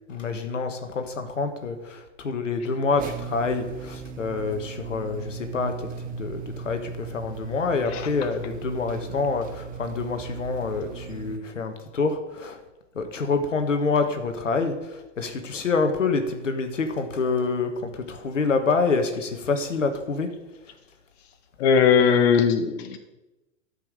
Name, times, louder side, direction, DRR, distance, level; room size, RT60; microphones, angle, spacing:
voice 1, 0.1-12.6 12.9-20.3, left 4 dB, 85° left, 7 dB, 1.4 m, -27 dB
sound 1, 3.0-11.4, right 6 dB, 25° right, 0.9 m, -37 dB
voice 2, 21.6-23.0, left 6 dB, 55° left, 7 dB, 1.2 m, -19 dB
12.0 x 5.6 x 6.6 m, 1.0 s
hypercardioid pair, 105°, 37 cm